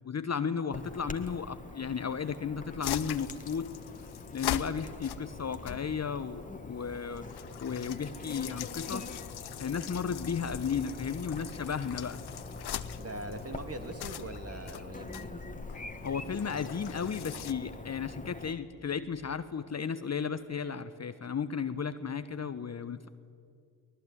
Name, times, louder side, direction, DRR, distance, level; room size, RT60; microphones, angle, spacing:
voice 1, 0.0-3.7 4.3-7.2 7.6-9.1 9.6-12.2 16.0-23.1, left 6 dB, 30° left, 11 dB, 1.1 m, -34 dB
Chirp tweet / Buzz, 0.7-18.5, left 2 dB, 15° left, 2.0 m, -44 dB
sound 1, 2.8-17.5, left 11 dB, 50° left, 1.0 m, -42 dB
voice 2, 13.0-15.4, right 2 dB, 30° right, 6 dB, 3.1 m, -42 dB
24.0 x 18.5 x 9.6 m, 2.4 s
hypercardioid pair, 40°, 49 cm